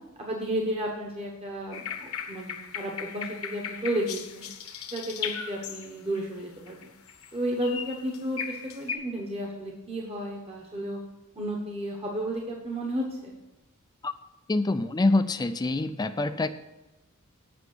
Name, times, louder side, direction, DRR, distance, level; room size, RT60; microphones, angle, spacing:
voice 1, 0.2-4.5 4.9-6.9 7.3-11.0 11.3-13.3, right 1 dB, 25° right, -1 dB, 1.2 m, -32 dB
sound 1, 1.7-6.2 6.7-7.3 7.6-8.9, left 7 dB, 70° left, 1.1 m, -37 dB
voice 2, 14.5-16.5, left 2 dB, 20° left, 9 dB, 0.4 m, -25 dB
8.2 x 5.8 x 7.9 m, 1.0 s
head